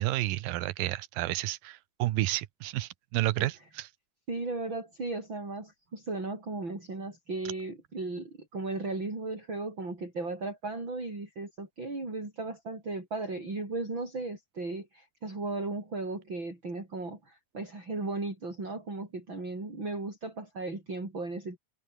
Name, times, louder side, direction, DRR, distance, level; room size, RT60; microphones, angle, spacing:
voice 1, 0.0-3.9, right 16 dB, 85° right, 2.7 m, -31 dB
voice 2, 4.3-21.6, right 3 dB, 35° right, 7.7 m, -36 dB
omnidirectional pair, 3.9 m